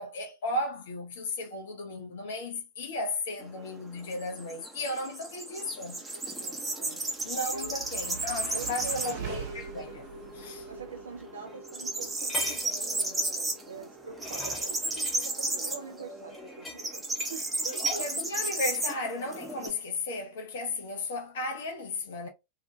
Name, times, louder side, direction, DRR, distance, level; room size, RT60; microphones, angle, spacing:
voice 1, 0.0-6.0 7.2-10.1 10.3-10.7 17.8-22.3, left 2 dB, 55° left, 0.5 m, -35 dB
sound 1, 3.4-9.3 9.7-9.8 10.2-11.0 11.2-19.7, right 2 dB, 15° right, 0.6 m, -33 dB
voice 2, 6.1-7.8 8.5-9.5 10.3-13.2 13.6-17.0 17.3-17.9, right 5 dB, 70° right, 0.3 m, -44 dB
sound 2, 6.7-19.0, right 4 dB, 50° right, 0.7 m, -45 dB
sound 3, 10.4-10.5 11.5-11.6 12.0-12.8 13.7-15.3 16.3-17.4 17.7-18.0 18.4-18.7, left 1 dB, 10° left, 0.9 m, -40 dB
2.5 x 2.1 x 2.7 m
figure-of-eight pair, 90°, 0 cm